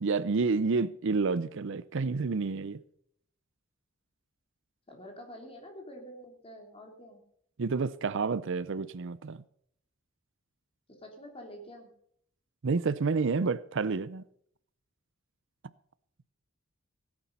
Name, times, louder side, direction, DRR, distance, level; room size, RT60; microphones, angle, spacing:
voice 1, 0.0-2.8 7.6-9.4 12.6-14.2, right 4 dB, 65° right, 0.6 m, -29 dB
voice 2, 4.9-7.2 10.9-11.9, equal, 30° left, 3.2 m, -47 dB
17.0 x 8.9 x 5.5 m
head